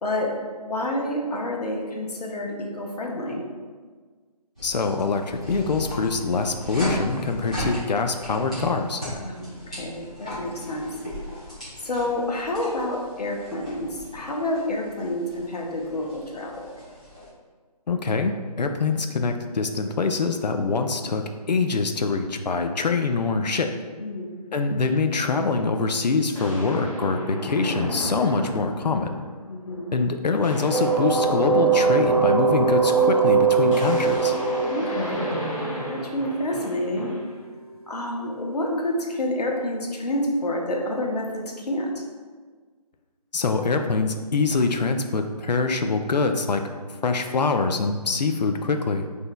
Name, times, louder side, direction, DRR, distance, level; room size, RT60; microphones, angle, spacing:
voice 1, 0.0-3.4 9.1-10.9 11.8-16.7 24.0-24.3 29.5-29.9 34.7-37.1 37.9-41.9, left 1 dB, 75° left, -1 dB, 1.0 m, -29 dB
voice 2, 4.6-9.0 17.9-21.2 21.5-23.7 24.5-29.2 29.9-34.4 43.3-46.6 47.0-49.0, left 4 dB, 90° left, 6 dB, 0.5 m, -24 dB
sound 1, 4.6-17.3, left 1 dB, 10° left, 0.5 m, -36 dB
sound 2, 26.3-29.2 29.7-30.0 30.2-37.4, equal, 50° left, 1.1 m, -34 dB
sound 3, 30.7-36.4, right 5 dB, 65° right, 0.7 m, -21 dB
6.1 x 2.7 x 2.2 m, 1.5 s
figure-of-eight pair, 170°, 21 cm